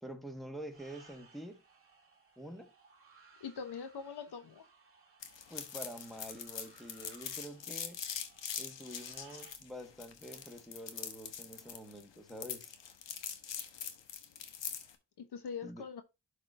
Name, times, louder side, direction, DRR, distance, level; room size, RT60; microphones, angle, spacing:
voice 1, 0.0-1.6 2.4-2.7 5.5-8.0 8.6-12.7 15.6-15.8, equal, ahead, 1.5 m, -47 dB
sound 1, 0.7-9.6, right 4 dB, 30° right, 1.9 m, -62 dB
voice 2, 3.4-4.6 15.2-16.0, left 6 dB, 65° left, 1.1 m, -42 dB
sound 2, 5.2-14.9, left 8 dB, 85° left, 1.1 m, -43 dB
12.0 x 4.1 x 2.6 m
cardioid pair, 75°, 43 cm